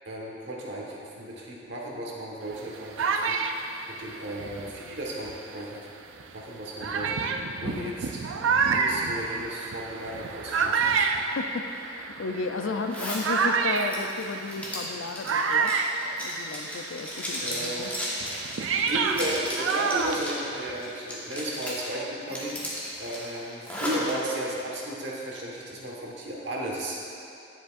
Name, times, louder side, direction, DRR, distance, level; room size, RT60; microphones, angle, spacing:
voice 1, 0.0-3.4 3.9-5.9 6.3-7.2 7.6-8.2 8.6-11.1 17.4-17.9 18.8-22.5 23.0-27.0, right 1 dB, 65° right, -3 dB, 1.4 m, -34 dB
sound 1, 2.5-5.5 6.2-6.3 6.8-16.8 17.1-20.9, right 5 dB, 85° right, 0.4 m, -28 dB
voice 2, 7.6-7.9 11.4-15.8 16.2-17.9, left 3 dB, 80° left, 7 dB, 0.4 m, -34 dB
Zipper (clothing), 12.9-13.3 13.7-20.4 20.8-21.9 22.3-24.1, equal, 10° left, 1.3 m, -35 dB
9.7 x 7.8 x 2.5 m, 2.7 s
head